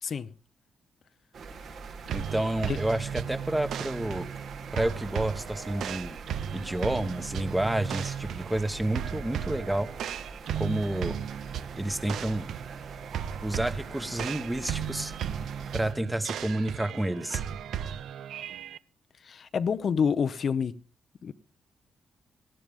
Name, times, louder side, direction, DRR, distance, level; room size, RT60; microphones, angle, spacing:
sound 1, 1.3-15.9, right 5 dB, 65° right, 2.3 m, -43 dB
voice 1, 2.1-4.3 4.7-6.2 6.5-9.9 10.5-11.2 11.7-12.5 13.4-15.1 15.7-17.4, right 1 dB, 10° right, 1.1 m, -30 dB
sound 2, 2.1-18.8, right 9 dB, 80° right, 0.7 m, -36 dB
voice 2, 19.2-20.7 21.2-21.3, left 6 dB, 50° left, 0.7 m, -28 dB
19.0 x 14.5 x 3.6 m
cardioid pair, 130°, 0 cm